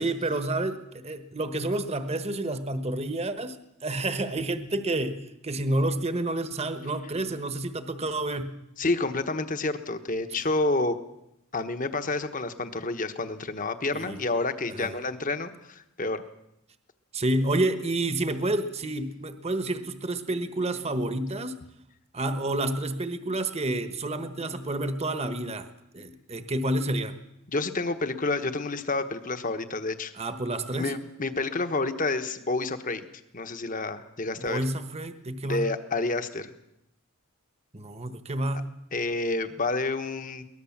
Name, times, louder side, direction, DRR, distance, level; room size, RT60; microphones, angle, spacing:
voice 1, 0.0-3.6 3.8-8.5 13.9-14.2 14.7-14.9 17.1-21.5 22.1-27.2 30.1-30.9 34.4-35.7 37.7-38.7, right 2 dB, 30° right, 9 dB, 1.2 m, -29 dB
voice 2, 8.8-11.0 11.5-16.2 27.5-30.1 30.7-33.0 33.3-34.6 35.4-36.5 38.9-40.4, left 3 dB, 35° left, 9 dB, 1.3 m, -29 dB
22.5 x 19.0 x 7.3 m, 0.84 s
head